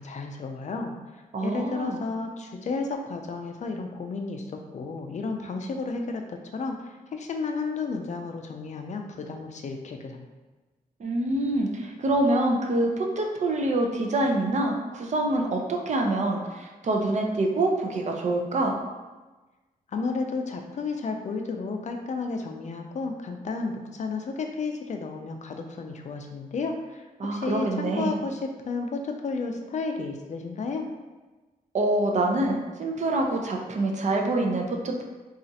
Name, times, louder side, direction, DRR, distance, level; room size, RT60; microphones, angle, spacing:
voice 1, 0.0-10.3 19.9-27.0 27.3-30.9, left 4 dB, 50° left, 4 dB, 0.4 m, -32 dB
voice 2, 1.3-2.0 11.0-18.8 27.2-28.1 31.7-35.0, right 2 dB, 50° right, 1 dB, 0.5 m, -26 dB
4.0 x 2.4 x 2.7 m, 1.2 s
wide cardioid pair, 145°, 15 cm